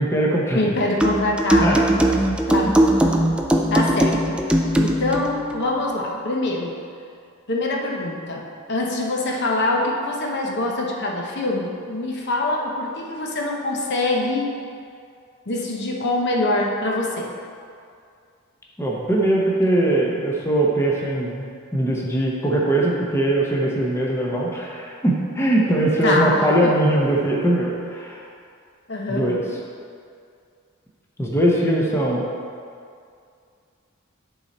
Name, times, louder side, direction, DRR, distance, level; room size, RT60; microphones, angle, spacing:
voice 1, 0.0-0.6 1.6-2.1 18.8-28.2 29.1-29.4 31.2-32.2, right 1 dB, 10° left, -3 dB, 0.8 m, -21 dB
voice 2, 0.5-1.9 2.5-3.1 3.7-4.4 4.8-6.7 7.5-14.5 15.5-17.3 26.0-26.7 28.9-29.3, left 2 dB, 55° left, -1 dB, 0.9 m, -24 dB
sound 1, 1.0-5.3, right 1 dB, 5° right, 0.3 m, -19 dB
10.5 x 4.0 x 4.2 m, 2.3 s
head